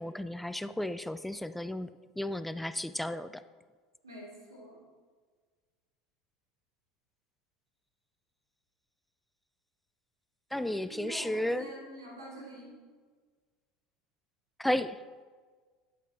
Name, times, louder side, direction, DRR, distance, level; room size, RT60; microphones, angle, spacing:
voice 1, 0.0-3.4 10.5-11.7 14.6-15.0, left 1 dB, 5° left, 12 dB, 0.4 m, -33 dB
voice 2, 4.0-4.8 10.8-12.7, right 1 dB, 90° right, -3 dB, 3.0 m, -46 dB
11.5 x 7.8 x 4.2 m, 1.5 s
hypercardioid pair, 75°, 2 cm